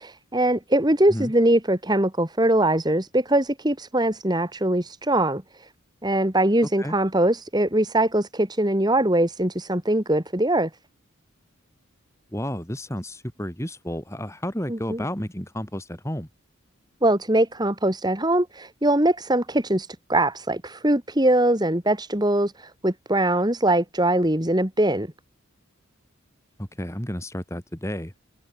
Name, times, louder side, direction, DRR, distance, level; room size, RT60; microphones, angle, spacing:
voice 1, 0.0-5.7 6.0-10.7 14.7-15.0 17.0-25.1, right 1 dB, 20° right, 2.1 m, -22 dB
voice 2, 12.3-16.3 26.6-28.1, equal, 15° left, 4.9 m, -31 dB
head